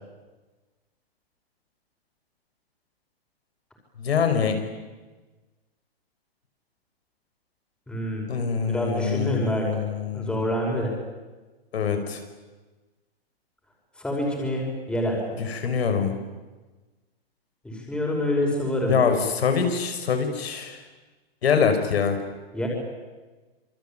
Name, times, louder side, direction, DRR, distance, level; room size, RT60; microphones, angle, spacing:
voice 1, 4.0-4.6 8.3-10.5 11.7-12.2 15.4-16.1 18.9-20.8 21.4-22.2, left 6 dB, 75° left, 6 dB, 5.6 m, -24 dB
voice 2, 7.9-8.3 8.6-9.7 10.1-10.9 14.0-15.4 17.6-19.1 22.5-22.7, left 1 dB, 5° left, -1 dB, 5.6 m, -27 dB
28.0 x 24.0 x 9.0 m, 1.2 s
hypercardioid pair, 165°, 31 cm